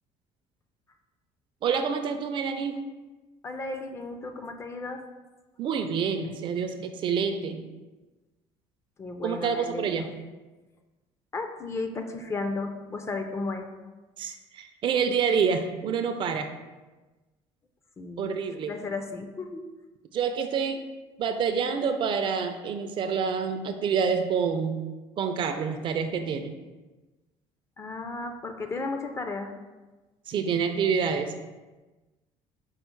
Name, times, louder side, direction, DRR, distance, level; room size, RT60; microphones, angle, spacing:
voice 1, 1.6-2.8 5.6-7.6 9.2-10.1 14.2-16.5 18.2-18.7 20.1-20.8 21.2-24.8 25.2-26.5 30.3-31.6, right 6 dB, 45° right, 7 dB, 0.4 m, -27 dB
voice 2, 3.4-5.0 9.0-10.1 11.3-13.7 18.0-18.3 18.7-19.6 27.8-29.5, left 3 dB, 25° left, 6 dB, 0.4 m, -34 dB
5.4 x 2.0 x 4.4 m, 1.2 s
cardioid pair, 120°, 12 cm